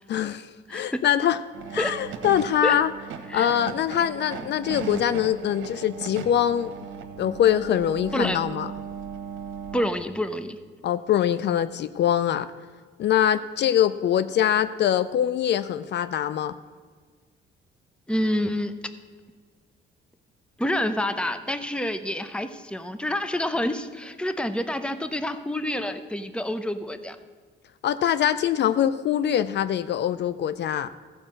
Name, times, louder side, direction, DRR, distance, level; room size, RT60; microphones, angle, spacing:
voice 1, 0.1-1.4 1.7-2.9 3.3-6.7 7.2-8.7 10.8-12.5 13.0-16.6 27.8-30.9, left 10 dB, 60° left, 14 dB, 0.5 m, -23 dB
voice 2, 0.7-1.0 1.8-1.9 2.6-2.8 3.3-3.6 8.1-8.5 9.7-10.6 18.1-18.7 20.6-27.2, left 1 dB, 5° left, 11 dB, 0.7 m, -28 dB
sound 1, 1.5-9.9, right 7 dB, 80° right, 1.1 m, -37 dB
15.0 x 5.0 x 7.6 m, 1.5 s
cardioid pair, 90°, 20 cm